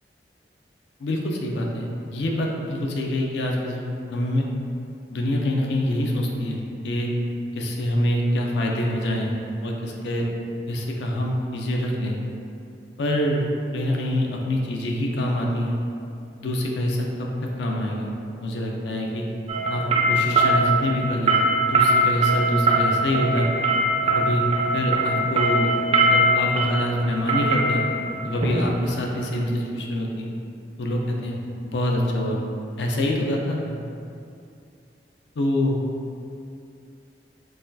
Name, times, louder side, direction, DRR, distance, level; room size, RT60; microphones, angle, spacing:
voice 1, 1.0-3.8 4.1-4.5 5.1-7.1 7.5-9.3 9.6-10.2 10.7-12.2 13.0-13.4 13.7-15.8 16.4-17.3 17.6-18.1 18.4-19.2 19.7-19.8 20.1-21.4 21.7-23.5 24.1-24.5 24.7-25.7 26.0-27.8 28.2-30.3 30.8-31.4 31.6-32.4 32.8-33.8 35.4-35.7, left 1 dB, 70° left, 0 dB, 0.4 m, -25 dB
sound 1, 19.5-29.3, right 2 dB, 35° right, 0.4 m, -22 dB
4.0 x 2.3 x 2.6 m, 2.5 s
head